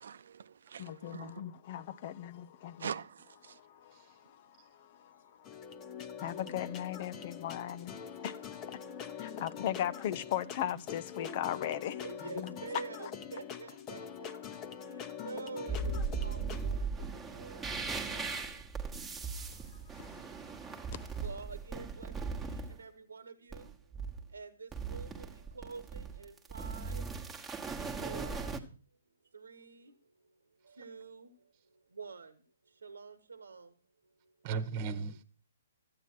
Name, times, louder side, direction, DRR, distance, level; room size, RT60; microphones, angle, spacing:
voice 1, 0.0-1.4 2.8-3.6, right 7 dB, 70° right, 0.8 m, -43 dB
voice 2, 0.8-2.9 3.4-5.5 6.2-12.1 12.4-12.5 13.0-13.1 19.9-21.2, left 11 dB, 45° left, 0.8 m, -39 dB
sound 1, 5.5-16.7, left 7 dB, 25° left, 1.1 m, -44 dB
voice 3, 9.3-9.7 12.0-17.6 18.1-19.0 21.2-23.9 24.3-27.1 28.0-28.5 29.3-30.0 30.6-33.7 34.2-34.3, right 4 dB, 85° right, 1.2 m, -48 dB
sound 2, 15.7-22.7 23.5-24.3 24.7-28.6, right 4 dB, 10° right, 1.4 m, -38 dB
voice 4, 20.2-20.6 22.7-22.8 34.4-35.2, right 5 dB, 35° right, 1.3 m, -39 dB
13.5 x 8.7 x 6.2 m
hypercardioid pair, 135°, 0 cm